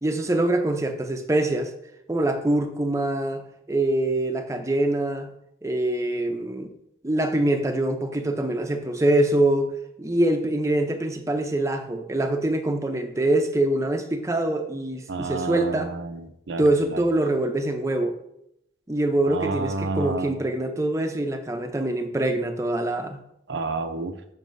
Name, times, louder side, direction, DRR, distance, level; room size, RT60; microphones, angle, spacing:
voice 1, 0.0-1.7 2.1-5.3 5.6-6.7 7.0-9.7 10.0-15.9 16.6-18.1 18.9-23.2, right 1 dB, 15° right, 6 dB, 0.5 m, -24 dB
voice 2, 15.1-17.0 19.2-20.4 23.5-24.1, right 3 dB, 80° right, 6 dB, 0.5 m, -30 dB
7.3 x 5.8 x 2.6 m, 0.79 s
head